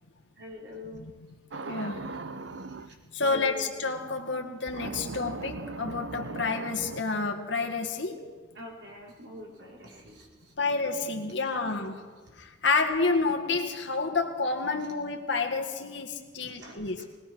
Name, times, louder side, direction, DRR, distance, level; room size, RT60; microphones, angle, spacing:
voice 1, 0.4-1.0 2.5-3.8 8.5-10.8 16.4-17.0, left 2 dB, 70° right, -2 dB, 4.7 m, -44 dB
sound 1, 1.5-2.9 4.7-7.0, right 3 dB, 85° right, 0.8 m, -38 dB
voice 2, 1.7-2.1 3.1-8.2 10.6-12.0 12.4-17.0, left 4 dB, 75° left, 4 dB, 1.9 m, -29 dB
20.5 x 20.5 x 6.2 m, 1.4 s
head